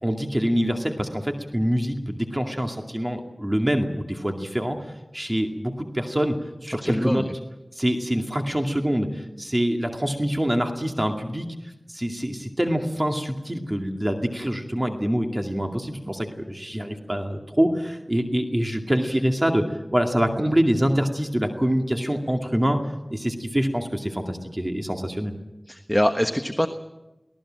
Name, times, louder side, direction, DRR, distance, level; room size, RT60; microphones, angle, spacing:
voice 1, 0.0-4.8 5.1-6.4 6.6-7.2 7.8-11.5 11.9-22.8 23.1-25.3, equal, 25° right, 3 dB, 2.4 m, -25 dB
voice 2, 6.8-7.2 25.7-26.7, equal, 5° left, 7 dB, 1.2 m, -23 dB
24.5 x 18.0 x 7.6 m, 1.0 s
wide cardioid pair, 45°, 0 cm